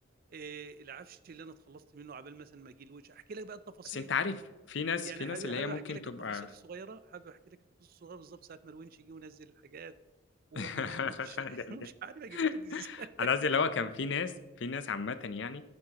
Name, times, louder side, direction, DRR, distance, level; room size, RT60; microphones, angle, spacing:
voice 1, 0.3-4.1 4.9-10.0 10.5-13.3, right 5 dB, 50° right, 15 dB, 0.4 m, -46 dB
voice 2, 3.9-4.4 4.7-6.5 10.5-11.8 12.3-15.6, left 5 dB, 70° left, 12 dB, 0.6 m, -33 dB
11.0 x 9.6 x 2.9 m, 1.1 s
head